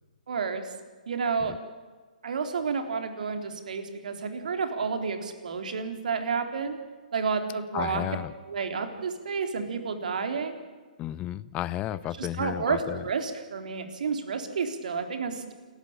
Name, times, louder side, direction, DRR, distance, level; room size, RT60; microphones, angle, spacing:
voice 1, 0.3-0.6 1.1-1.5 2.2-6.8 7.1-8.0 8.5-10.6 12.2-15.5, right 5 dB, 65° right, 6 dB, 3.7 m, -30 dB
voice 2, 7.7-8.3 11.0-13.0, left 13 dB, 25° left, 18 dB, 0.8 m, -33 dB
29.0 x 14.0 x 8.9 m, 1.4 s
figure-of-eight pair, 130°, 5 cm